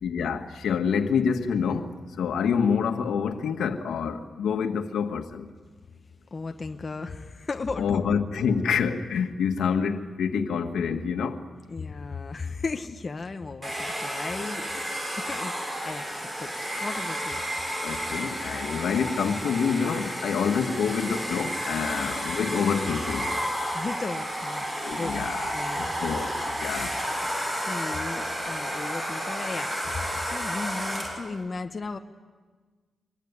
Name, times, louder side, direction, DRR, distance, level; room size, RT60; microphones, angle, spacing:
voice 1, 0.0-5.5 7.8-11.4 17.8-23.3 24.7-27.0, left 6 dB, 85° left, 1.8 m, -27 dB
voice 2, 6.3-8.4 11.7-14.7 15.3-16.5 16.8-17.4 23.7-25.2 25.5-25.9 27.2-30.0 30.3-32.0, left 4 dB, 25° left, 1.1 m, -35 dB
Domestic sounds home sounds, 13.6-31.3, equal, 20° right, 6.7 m, -31 dB
24.5 x 23.0 x 9.9 m
wide cardioid pair, 170°, 0 cm